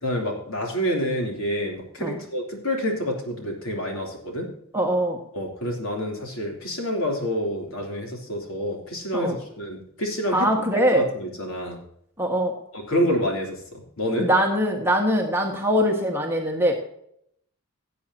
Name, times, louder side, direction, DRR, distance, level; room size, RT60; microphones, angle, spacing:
voice 1, 0.0-4.5 5.3-10.5 10.9-11.8 12.7-13.6 14.0-14.3, equal, 70° left, 1 dB, 3.2 m, -27 dB
voice 2, 4.7-5.2 9.1-9.4 10.3-11.0 12.2-12.5 14.2-16.7, equal, 10° right, 0 dB, 1.6 m, -22 dB
17.0 x 8.5 x 2.8 m, 0.69 s
head